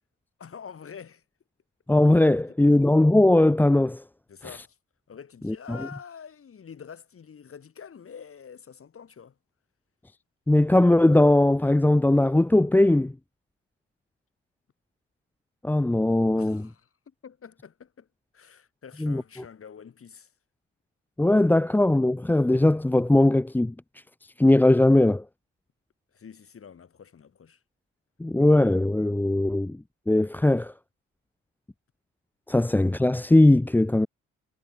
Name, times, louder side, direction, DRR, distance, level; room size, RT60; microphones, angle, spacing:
voice 1, 0.4-1.2 2.5-2.8 4.3-4.8 5.1-9.4 16.1-18.1 18.3-20.3 26.1-27.6, left 7 dB, 45° left, 6.7 m, -46 dB
voice 2, 1.9-4.0 5.5-5.6 10.5-13.1 15.6-16.6 19.0-19.2 21.2-23.7 24.4-25.2 28.2-29.8 30.1-30.7 32.5-34.1, left 1 dB, 5° left, 0.6 m, -19 dB
cardioid pair, 90°, 30 cm